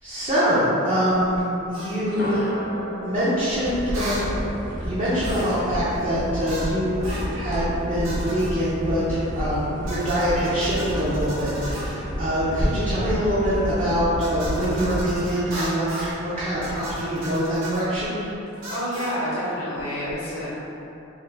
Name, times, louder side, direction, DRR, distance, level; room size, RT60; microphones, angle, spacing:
voice 1, 0.0-1.4 1.7-2.5 3.0-4.1 4.8-18.2, equal, 30° right, -11 dB, 0.6 m, -24 dB
sound 1, 1.7-2.0 3.9-4.3 5.2-5.7 6.5-6.7 7.0-7.3 8.0-8.6 9.9-12.0 14.2-16.2 16.6-17.9 18.6-19.2, right 1 dB, 60° right, 0.7 m, -35 dB
sound 2, 2.0-6.0, equal, 45° left, 0.4 m, -35 dB
sound 3, 3.6-15.2, equal, 45° right, 1.2 m, -31 dB
voice 2, 18.7-20.5, equal, 90° left, -9 dB, 0.7 m, -28 dB
3.6 x 3.0 x 3.2 m, 3.0 s
head